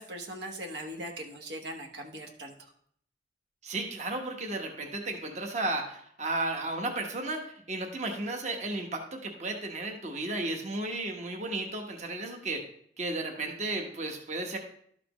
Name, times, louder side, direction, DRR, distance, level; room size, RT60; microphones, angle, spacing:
voice 1, 0.0-2.5, right 1 dB, 70° right, 2 dB, 1.0 m, -40 dB
voice 2, 3.6-12.6 13.0-14.6, right 2 dB, 40° right, 3 dB, 1.0 m, -34 dB
12.5 x 5.8 x 3.0 m, 0.64 s
head